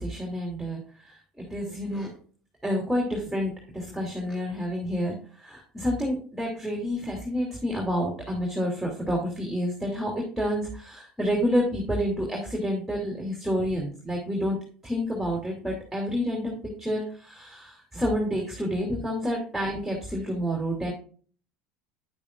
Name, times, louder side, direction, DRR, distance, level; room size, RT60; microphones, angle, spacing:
voice 1, 0.0-2.1 2.6-14.6 14.8-20.9, equal, ahead, -2 dB, 3.1 m, -29 dB
9.7 x 8.7 x 2.5 m, 0.44 s
hypercardioid pair, 75°, 5 cm